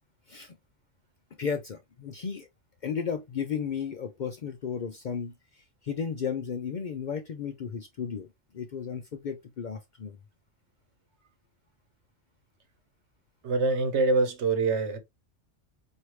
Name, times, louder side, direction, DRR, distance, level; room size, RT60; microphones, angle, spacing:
voice 1, 1.4-2.5 2.8-8.3 8.5-10.2, left 6 dB, 55° left, 0.5 m, -34 dB
voice 2, 13.4-15.0, right 3 dB, 70° right, 1.1 m, -25 dB
4.7 x 2.7 x 3.0 m
omnidirectional pair, 1.2 m